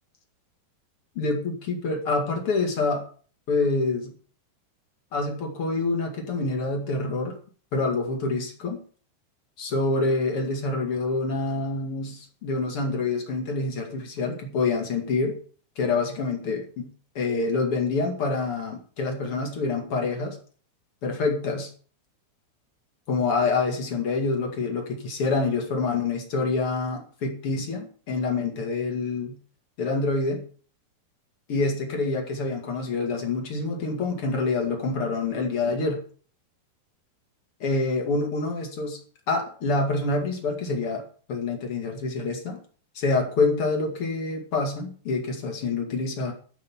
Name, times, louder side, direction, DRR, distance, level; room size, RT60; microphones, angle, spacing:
voice 1, 1.2-3.0 3.5-4.1 5.1-7.4 7.7-8.8 9.6-15.4 15.8-16.9 17.1-20.4 21.0-21.7 23.1-29.4 29.8-30.4 31.5-36.0 37.6-39.0 39.3-41.0 41.3-42.6 42.9-46.3, left 3 dB, 45° left, 2 dB, 2.1 m, -26 dB
13.5 x 5.7 x 7.2 m, 0.42 s
omnidirectional pair, 5.6 m